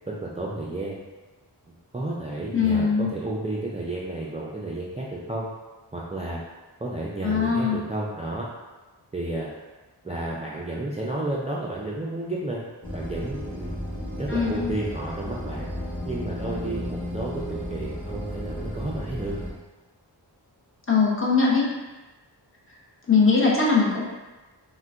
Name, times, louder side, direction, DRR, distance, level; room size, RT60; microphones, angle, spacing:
voice 1, 0.1-1.0 1.9-5.5 5.9-6.4 6.8-8.5 9.1-9.5 10.0-12.6 12.9-13.8 14.1-15.7 16.1-19.4, right 2 dB, 15° right, -5 dB, 0.3 m, -32 dB
voice 2, 2.5-3.1 7.2-7.8 14.3-14.7 20.9-21.7 23.1-24.0, left 5 dB, 30° left, -5 dB, 0.7 m, -21 dB
sound 1, 12.8-19.5, equal, 10° left, 1.3 m, -33 dB
3.7 x 2.2 x 2.4 m, 1.2 s
wide cardioid pair, 60°, 43 cm